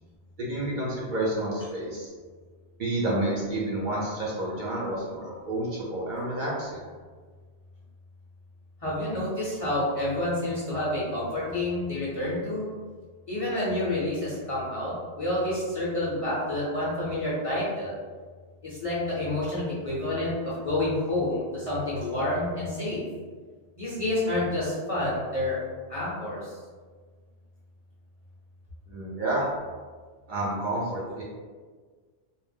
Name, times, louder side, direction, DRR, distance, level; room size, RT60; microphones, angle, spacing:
voice 1, 0.4-2.1 2.8-6.9 28.9-29.5 30.3-31.2, right 1 dB, 55° right, -6 dB, 0.6 m, -29 dB
voice 2, 8.8-12.7 13.3-17.9 18.6-23.0 23.8-25.6 25.9-26.4, left 1 dB, 40° left, -8 dB, 0.6 m, -29 dB
2.6 x 2.0 x 3.4 m, 1.5 s
omnidirectional pair, 1.1 m